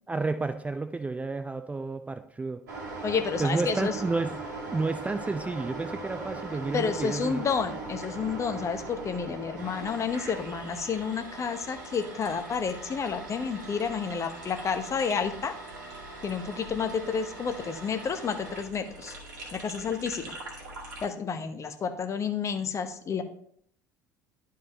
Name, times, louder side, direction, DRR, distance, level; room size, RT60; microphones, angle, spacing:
voice 1, 0.1-2.6 3.4-4.4 4.7-7.4, right 3 dB, 15° right, 9 dB, 0.5 m, -31 dB
sound 1, 2.7-21.1, right 2 dB, 70° right, 2.1 m, -40 dB
voice 2, 3.0-4.0 6.7-15.6 16.2-19.1 19.5-20.3 21.0-23.2, left 6 dB, 30° left, 7 dB, 1.0 m, -30 dB
12.0 x 4.7 x 2.9 m, 0.64 s
figure-of-eight pair, 65°, 10 cm